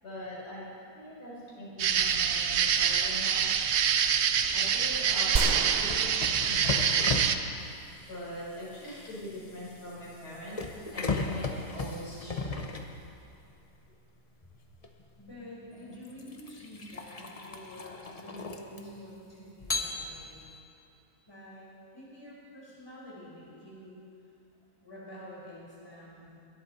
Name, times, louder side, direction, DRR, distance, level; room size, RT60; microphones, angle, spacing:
voice 1, 0.0-3.4 4.5-7.2 8.1-10.6 10.9-12.5, left 1 dB, 85° left, -6 dB, 5.2 m, -42 dB
sound 1, 1.8-7.4, right 7 dB, 60° right, 0.8 m, -26 dB
sound 2, 5.4-7.3 7.6-7.7, right 4 dB, 75° right, 0.4 m, -32 dB
sound 3, 5.9-13.5 14.8-15.0 15.7-19.1 19.6-20.5, left 3 dB, 30° left, 0.7 m, -36 dB
voice 2, 15.2-20.4 21.3-21.7 21.9-23.9 24.8-26.3, left 1 dB, 15° left, -6 dB, 4.3 m, -48 dB
22.0 x 11.5 x 4.3 m, 2.6 s
omnidirectional pair, 1.7 m